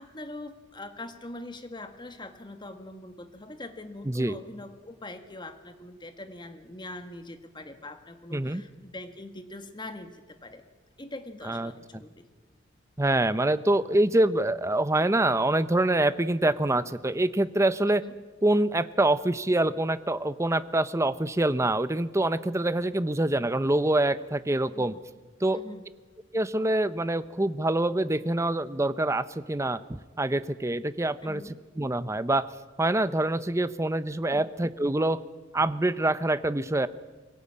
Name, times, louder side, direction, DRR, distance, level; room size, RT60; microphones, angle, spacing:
voice 1, 0.0-10.6 11.0-12.2 17.9-18.1 24.7-25.0 25.5-25.9 31.2-31.5 34.3-34.5, left 2 dB, 25° left, 7 dB, 1.7 m, -42 dB
voice 2, 4.0-4.4 8.3-8.6 11.4-12.0 13.0-18.0 18.4-24.9 25.4-25.6 26.3-31.4 31.8-32.5 32.8-35.2 35.5-36.9, right 1 dB, 15° right, 14 dB, 0.7 m, -25 dB
22.5 x 17.5 x 8.6 m, 1.3 s
head